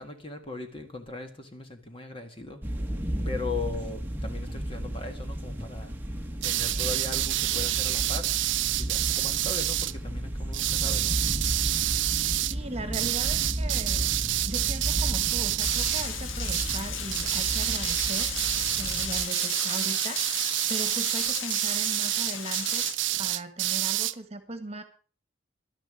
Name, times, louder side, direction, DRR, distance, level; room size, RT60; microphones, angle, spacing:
voice 1, 0.0-2.6 3.2-5.9 6.4-11.4 18.8-19.0, left 3 dB, 25° left, 5 dB, 1.6 m, -39 dB
sound 1, 2.6-19.3, equal, 10° right, 1.3 m, -34 dB
sound 2, 6.4-9.9 10.5-12.5 12.9-16.1 16.4-16.8 17.1-24.1, right 16 dB, 60° right, 0.5 m, -28 dB
voice 2, 12.5-14.1 14.4-18.3 18.7-20.2 20.7-22.8 23.2-24.8, right 2 dB, 30° right, 9 dB, 1.7 m, -38 dB
Rain, 15.6-22.9, left 6 dB, 70° left, 1.6 m, -35 dB
12.0 x 10.5 x 6.3 m, 0.39 s
head